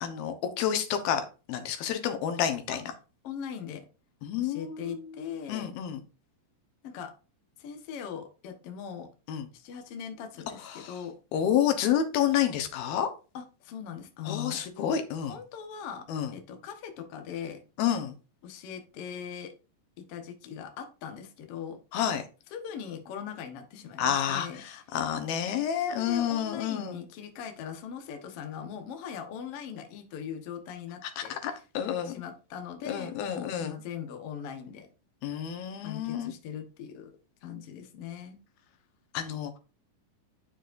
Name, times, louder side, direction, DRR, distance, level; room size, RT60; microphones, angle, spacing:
voice 1, 0.0-2.8 4.2-5.1 5.5-6.0 9.3-9.5 10.7-10.9 11.3-13.1 14.3-15.4 16.1-16.3 17.8-18.1 21.9-22.2 24.0-27.0 31.2-32.1 32.9-33.7 35.2-36.3 39.1-39.6, left 9 dB, 85° left, 7 dB, 2.9 m, -29 dB
voice 2, 3.2-3.8 4.4-5.7 6.8-7.1 7.6-9.1 9.5-11.2 13.3-14.6 15.3-16.1 16.3-17.6 18.4-19.5 20.0-21.8 22.5-24.6 25.9-31.6 32.0-34.9 35.8-37.1 37.4-38.4, left 8 dB, 60° left, 5 dB, 1.6 m, -40 dB
9.2 x 7.0 x 2.6 m, 0.33 s
omnidirectional pair, 4.2 m